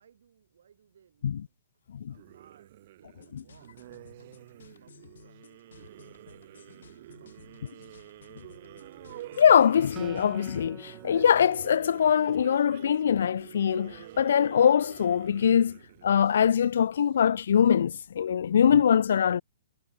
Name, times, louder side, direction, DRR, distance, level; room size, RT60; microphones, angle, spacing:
voice 1, 0.0-1.8 2.1-8.1, right 8 dB, 75° right, 7.5 m, -63 dB
sound 1, 2.1-17.0, right 15 dB, 40° right, 2.1 m, -48 dB
sound 2, 3.2-10.4, left 7 dB, 90° left, 4.0 m, -56 dB
voice 2, 9.4-15.8 16.0-19.4, left 8 dB, 70° left, 0.4 m, -22 dB
Acoustic guitar, 10.0-13.4, right 10 dB, 15° right, 0.8 m, -49 dB
hypercardioid pair, 165°, 0 cm